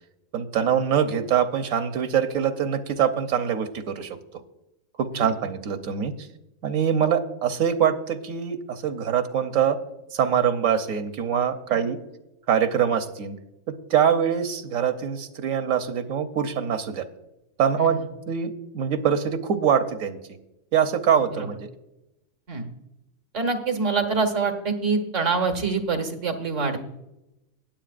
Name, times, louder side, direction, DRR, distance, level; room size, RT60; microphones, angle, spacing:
voice 1, 0.3-4.2 5.0-6.1 6.6-9.8 10.1-12.0 12.5-13.4 13.9-17.1 17.6-18.0 18.3-20.2 20.7-21.7, right 8 dB, 85° right, 8 dB, 1.3 m, -24 dB
voice 2, 23.3-26.8, right 4 dB, 65° right, 6 dB, 1.7 m, -25 dB
19.5 x 7.8 x 2.5 m, 0.90 s
omnidirectional pair, 1.4 m